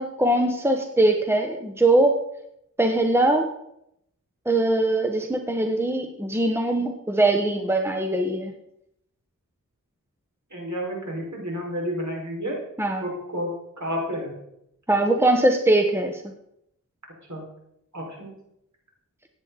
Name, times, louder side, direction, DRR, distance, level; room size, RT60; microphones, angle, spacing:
voice 1, 0.0-2.1 2.8-3.5 4.4-8.5 12.8-13.0 14.9-16.2, right 1 dB, 5° right, 4 dB, 1.4 m, -21 dB
voice 2, 10.5-12.6 13.0-13.5 13.8-14.3 17.3-17.4 17.9-18.3, equal, 55° right, -2 dB, 5.7 m, -30 dB
15.5 x 9.5 x 4.3 m, 0.78 s
wide cardioid pair, 45°, 34 cm